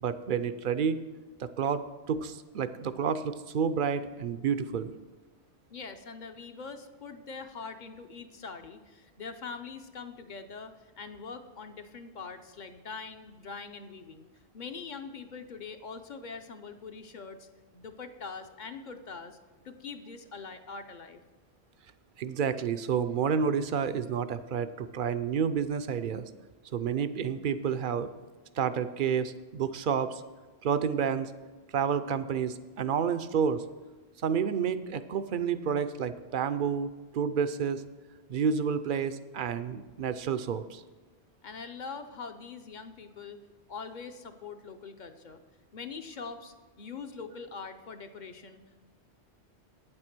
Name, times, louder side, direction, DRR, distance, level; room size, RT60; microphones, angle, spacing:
voice 1, 0.0-1.0 1.4-1.8 2.1-4.9 22.2-26.3 26.7-28.1 28.6-30.2 30.6-31.3 31.7-33.6 34.2-37.8 38.3-40.8, right 7 dB, 60° right, 11 dB, 0.6 m, -30 dB
voice 2, 5.7-14.3 14.5-17.5 17.7-19.4 19.6-21.2 41.4-43.4 43.7-45.4 45.7-48.8, left 5 dB, 50° left, 8 dB, 0.7 m, -43 dB
9.2 x 7.7 x 6.0 m, 1.3 s
omnidirectional pair, 1.1 m